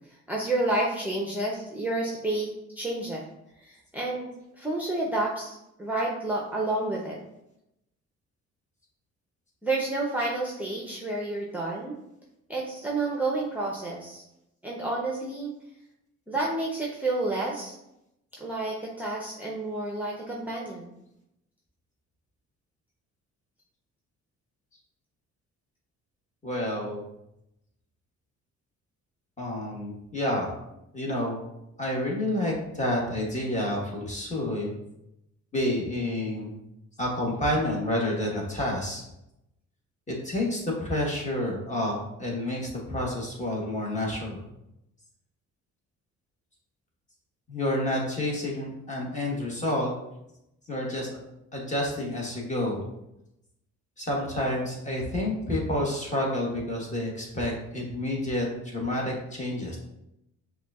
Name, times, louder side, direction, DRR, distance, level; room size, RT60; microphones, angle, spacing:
voice 1, 0.3-2.5 2.8-3.2 3.6-7.2 9.6-12.0 12.5-14.2 14.6-15.5 16.3-17.7 18.4-20.9, right 2 dB, 5° right, -2 dB, 0.6 m, -30 dB
voice 2, 26.4-27.1 29.4-30.5 30.9-31.4 31.8-34.7 35.5-36.6 37.0-39.0 40.1-44.4 47.5-49.9 50.7-51.2 51.5-52.9 54.0-59.8, left 1 dB, 25° left, -2 dB, 1.3 m, -29 dB
5.9 x 2.3 x 2.4 m, 0.84 s
cardioid pair, 90°, 30 cm